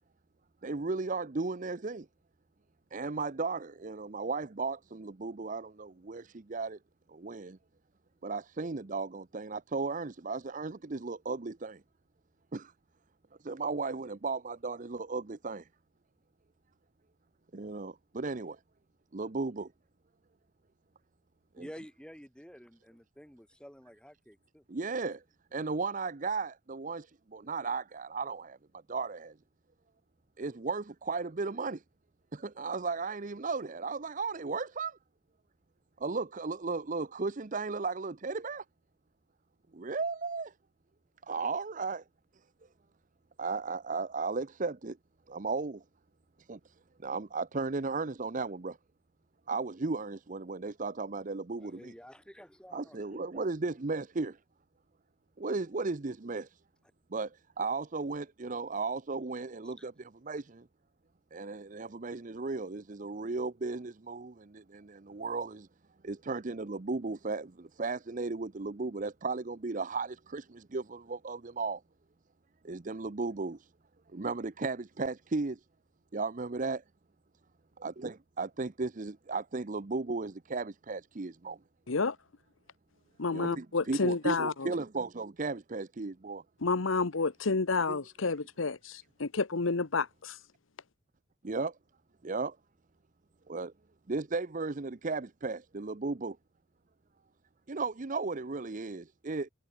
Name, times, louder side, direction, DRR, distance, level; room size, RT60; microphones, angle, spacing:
voice 1, 0.6-2.1 2.9-6.8 7.1-7.6 8.2-11.8 12.5-12.7 13.4-15.7 17.5-18.6 19.1-19.7 21.6-21.7 24.7-25.2 25.5-28.6 28.9-29.3 30.4-31.8 32.3-35.0 36.0-38.6 39.7-40.5 41.3-42.0 43.4-45.0 45.3-45.8 46.5-46.6 47.0-48.8 49.5-51.9 52.7-54.4 55.4-56.5 57.1-60.6 61.3-65.7 66.0-71.8 72.6-73.6 74.1-75.6 76.1-76.8 77.8-81.6 83.3-86.4 87.9-88.0 91.4-91.7 92.2-92.6 93.5-93.7 94.1-96.4 97.7-99.5, right 3 dB, 40° right, 0.7 m, -35 dB
voice 2, 21.6-24.6 51.6-53.5 59.8-59.9, equal, 5° left, 6.9 m, -51 dB
voice 3, 83.2-84.7 86.6-90.4, left 4 dB, 85° left, 1.0 m, -30 dB
head